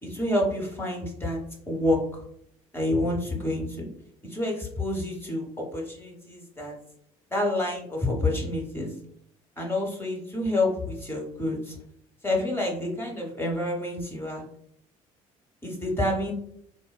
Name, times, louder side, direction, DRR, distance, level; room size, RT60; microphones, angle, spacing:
voice 1, 0.0-1.4 1.7-2.0 2.7-3.9 4.2-6.7 7.3-8.9 9.6-11.8 12.2-14.4 15.6-16.3, left 1 dB, 15° left, -2 dB, 0.8 m, -28 dB
3.1 x 2.1 x 2.2 m, 0.69 s
figure-of-eight pair, 55°, 18 cm